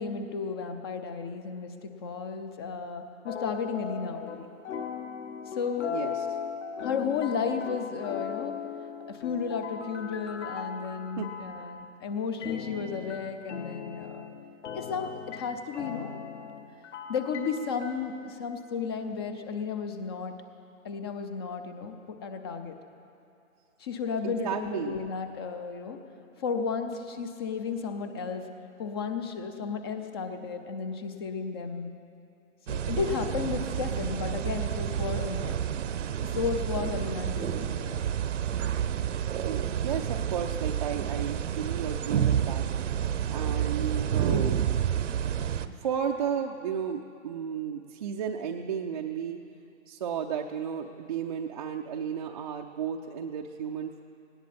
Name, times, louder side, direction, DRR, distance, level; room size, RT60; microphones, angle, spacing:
voice 1, 0.0-4.5 5.5-6.0 6.8-8.6 9.1-14.2 14.7-16.1 17.1-20.4 20.8-22.8 23.8-26.0 26.4-28.5 28.8-31.9 32.7-35.6 36.3-38.0 44.2-44.4, left 5 dB, 20° left, 7 dB, 0.5 m, -33 dB
sound 1, 3.3-4.4 4.6-11.9 12.4-17.9, left 7 dB, 55° left, 1.7 m, -38 dB
voice 2, 5.9-6.3 11.2-11.3 24.2-25.0 39.4-42.7 43.3-44.6 45.6-49.4 49.9-54.0, right 7 dB, 30° right, 2 dB, 0.5 m, -33 dB
sound 2, 32.7-45.7, right 9 dB, 60° right, 0.8 m, -29 dB
18.0 x 17.5 x 4.3 m, 2.6 s
hypercardioid pair, 135°, 42 cm